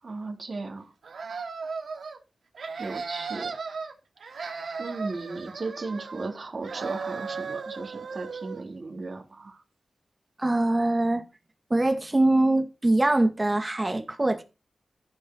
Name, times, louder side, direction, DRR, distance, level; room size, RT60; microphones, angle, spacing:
voice 1, 0.0-0.9 2.8-3.5 4.8-9.6, right 3 dB, 50° right, 3.5 m, -36 dB
sound 1, 1.0-2.2 2.5-3.9 4.2-6.4 6.6-8.6, right 5 dB, 85° right, 2.4 m, -36 dB
voice 2, 10.4-11.2 11.7-14.4, right 2 dB, 25° right, 2.0 m, -23 dB
14.5 x 5.5 x 5.5 m
wide cardioid pair, 95°, 0 cm